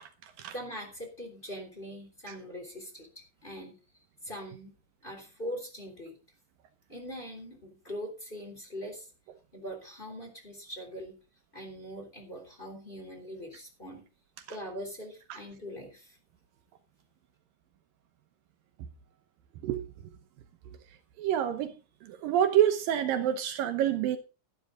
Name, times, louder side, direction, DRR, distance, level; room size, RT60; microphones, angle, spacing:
voice 1, 0.0-0.5 2.3-2.4 15.3-15.4 19.6-19.8 21.2-21.7 22.0-24.2, right 10 dB, 75° right, 2.5 m, -27 dB
voice 2, 0.5-3.8 4.2-6.2 6.9-9.1 9.5-11.2 11.5-14.0 14.5-16.2, equal, 15° left, 3.3 m, -42 dB
12.5 x 12.0 x 3.8 m
omnidirectional pair, 4.3 m